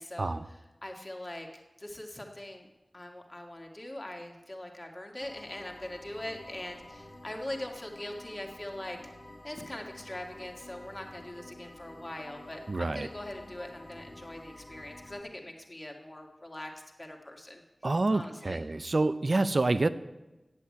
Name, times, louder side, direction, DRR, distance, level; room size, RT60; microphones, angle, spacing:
voice 1, 0.0-2.7 2.9-9.0 9.4-17.6 18.1-18.9, left 1 dB, 30° left, 1 dB, 1.9 m, -42 dB
sound 1, 5.2-15.2, left 1 dB, 50° left, 1.7 m, -50 dB
voice 2, 12.7-13.1 17.8-19.9, right 2 dB, 60° right, 13 dB, 0.5 m, -27 dB
8.2 x 8.1 x 8.4 m, 1.1 s
wide cardioid pair, 45°, 0 cm